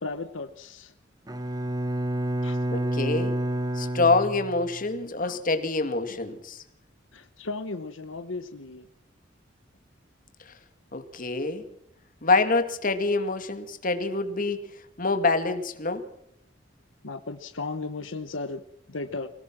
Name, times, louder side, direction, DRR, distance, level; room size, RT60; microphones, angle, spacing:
voice 1, 0.0-0.9 2.4-2.6 5.2-5.4 7.1-8.9 17.0-18.6 18.9-19.3, left 3 dB, 85° left, 9 dB, 1.1 m, -35 dB
Bowed string instrument, 1.3-4.8, right 1 dB, 20° right, 1.4 m, -29 dB
voice 2, 2.7-3.3 3.8-6.6 10.9-11.6 12.2-14.7 15.0-16.0, left 3 dB, 45° left, 8 dB, 2.2 m, -26 dB
24.5 x 18.0 x 6.1 m, 0.75 s
head